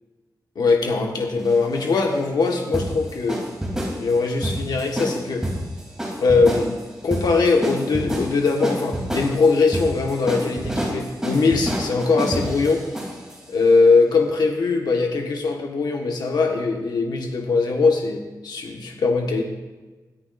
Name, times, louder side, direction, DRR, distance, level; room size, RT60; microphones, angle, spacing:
voice 1, 0.5-3.4 4.0-5.4 6.2-6.8 7.0-12.8 13.5-19.4, left 4 dB, 80° left, 2 dB, 1.5 m, -21 dB
sound 1, 1.4-13.4, equal, 10° right, 3.2 m, -29 dB
20.5 x 13.5 x 2.6 m, 1.2 s
wide cardioid pair, 170°, 7 cm